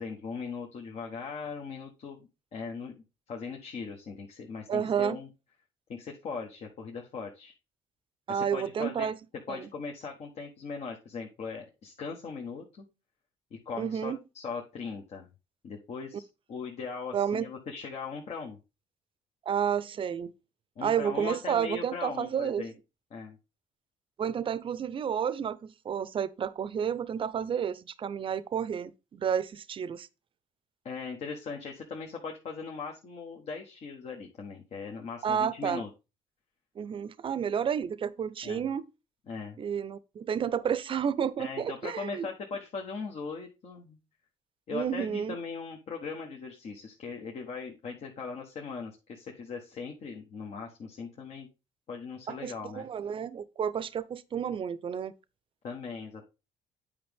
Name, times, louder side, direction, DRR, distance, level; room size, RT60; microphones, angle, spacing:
voice 1, 0.0-2.9 3.3-5.3 5.9-7.5 8.3-9.1 9.5-12.9 13.6-15.3 15.6-18.6 20.8-22.7 23.1-23.4 30.8-35.9 38.4-38.7 39.3-39.6 41.4-44.0 44.7-51.5 51.9-52.9 55.6-56.2, left 5 dB, 60° left, 1.3 m, -39 dB
voice 2, 4.7-5.2 8.3-9.2 9.5-9.7 13.8-14.2 17.1-17.5 19.5-20.3 20.8-22.6 24.2-30.1 35.2-35.9 36.8-38.8 39.6-42.3 44.7-45.4 52.3-55.1, right 8 dB, 45° right, 0.6 m, -31 dB
8.7 x 5.0 x 3.5 m
supercardioid pair, 75°, 13 cm